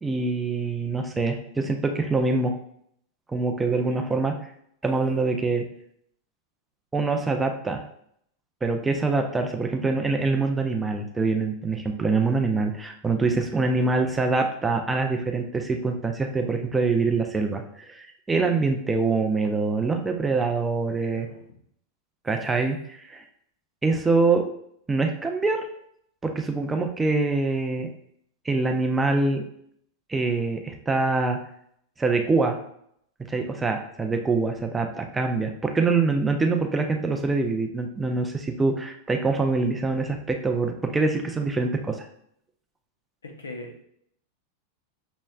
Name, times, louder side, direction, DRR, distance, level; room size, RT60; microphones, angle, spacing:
voice 1, 0.0-2.5 3.3-4.3 4.8-5.7 6.9-7.8 8.6-21.3 22.2-23.2 23.8-24.4 24.9-25.6 26.2-27.9 28.5-29.4 30.1-31.4 32.0-32.6 33.3-42.1, right 3 dB, 10° right, 4 dB, 0.5 m, -24 dB
voice 2, 13.3-13.6 21.1-21.6 43.2-43.8, left 2 dB, 70° left, 2 dB, 0.8 m, -41 dB
6.0 x 3.1 x 2.3 m, 0.69 s
figure-of-eight pair, 90°, 0 cm